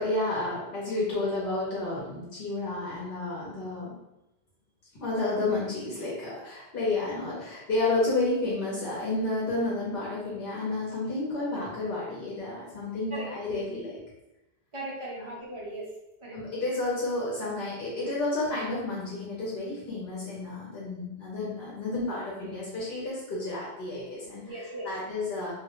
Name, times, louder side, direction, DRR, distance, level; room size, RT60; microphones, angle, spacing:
voice 1, 0.0-3.9 5.0-14.0 16.3-24.4 24.8-25.5, left 2 dB, 70° left, -7 dB, 0.9 m, -31 dB
voice 2, 14.7-16.4 24.4-24.9, right 1 dB, 45° right, -4 dB, 0.4 m, -38 dB
2.2 x 2.1 x 2.8 m, 0.92 s
omnidirectional pair, 1.1 m